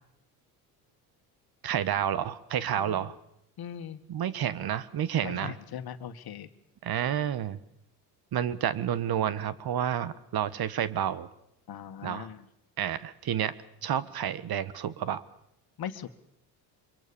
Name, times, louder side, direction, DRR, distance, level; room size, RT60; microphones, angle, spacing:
voice 1, 1.6-3.1 4.1-5.5 6.8-7.6 8.3-11.3 12.0-12.3 12.8-13.5 13.8-15.2, right 10 dB, 50° right, 16 dB, 1.5 m, -30 dB
voice 2, 2.8-3.1 3.6-4.0 5.2-6.5 11.7-12.5 15.8-16.1, left 9 dB, 50° left, 9 dB, 2.0 m, -40 dB
24.5 x 22.5 x 7.0 m, 0.77 s
supercardioid pair, 70°, 46 cm